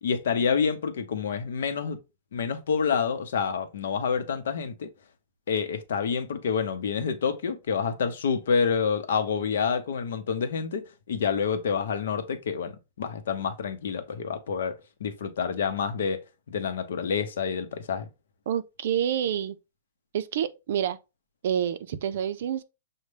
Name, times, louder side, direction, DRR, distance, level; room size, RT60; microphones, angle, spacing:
voice 1, 0.0-2.0 2.3-4.9 5.5-10.8 11.1-16.2 16.5-18.1, left 6 dB, 75° left, 0.7 m, -28 dB
voice 2, 18.5-19.6 20.1-21.0 21.4-22.6, right 9 dB, 60° right, 0.4 m, -28 dB
6.4 x 2.1 x 3.2 m
hypercardioid pair, 165°, 0 cm